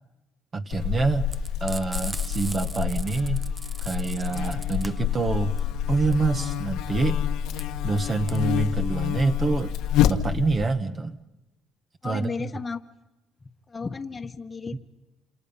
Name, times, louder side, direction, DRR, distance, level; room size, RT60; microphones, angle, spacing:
voice 1, 0.5-1.3 1.6-3.4 3.8-5.5 5.9-7.2 7.8-9.7 10.1-11.2 12.0-12.5 14.7-14.8, right 4 dB, 30° right, 7 dB, 1.2 m, -26 dB
Buzz, 0.7-10.7, left 10 dB, 80° left, 1.4 m, -27 dB
Frying (food), 1.3-10.0, right 2 dB, 15° right, 0.8 m, -40 dB
voice 2, 12.0-12.8 13.7-14.8, left 4 dB, 20° left, 4 dB, 1.3 m, -33 dB
28.5 x 27.5 x 5.6 m, 1.0 s
cardioid pair, 115°, 0 cm